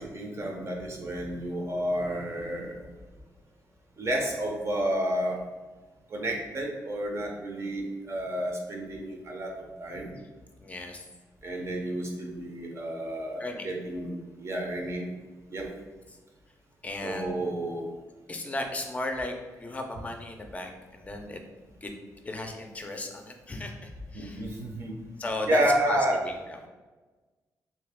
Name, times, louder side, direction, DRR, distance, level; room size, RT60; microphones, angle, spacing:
voice 1, 0.0-2.8 4.0-5.4 6.1-9.5 9.8-10.2 11.4-14.1 14.4-15.1 15.5-15.7 17.0-17.8 24.1-24.9 25.5-26.2, right 1 dB, 45° right, 0 dB, 0.7 m, -30 dB
voice 2, 10.6-11.0 13.4-13.7 16.1-16.2 16.8-17.4 18.3-21.9 22.2-24.6 25.2-26.7, left 2 dB, 20° left, 4 dB, 0.5 m, -36 dB
2.9 x 2.7 x 3.5 m, 1.3 s
cardioid pair, 100°, 7 cm